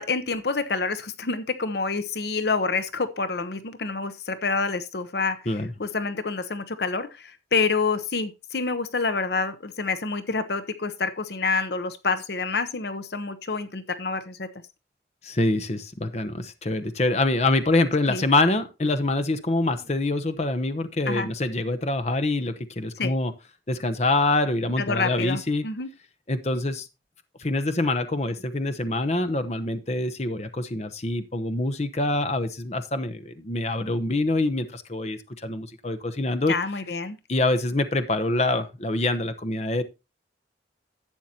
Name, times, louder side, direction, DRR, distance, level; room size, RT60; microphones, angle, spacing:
voice 1, 0.0-5.4 5.8-14.5 18.1-18.2 21.1-21.3 23.0-23.1 24.8-25.9 36.5-37.2, left 4 dB, 65° left, 0.8 m, -27 dB
voice 2, 15.2-23.3 23.7-25.6 26.3-26.9 27.4-36.5 37.3-39.8, left 2 dB, 35° left, 0.8 m, -25 dB
11.5 x 8.1 x 2.8 m
head